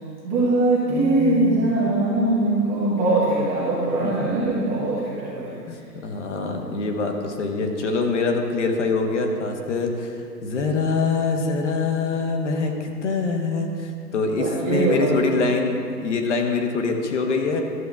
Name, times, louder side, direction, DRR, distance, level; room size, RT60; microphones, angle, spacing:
voice 1, 0.2-5.5 6.6-6.8 14.4-15.5, right 2 dB, 10° right, -10 dB, 0.6 m, -22 dB
voice 2, 0.9-1.9 4.0-4.1 5.7-10.1 10.4-17.6, left 4 dB, 45° left, 3 dB, 1.1 m, -24 dB
12.5 x 7.0 x 3.5 m, 2.3 s
figure-of-eight pair, 130°, 50 cm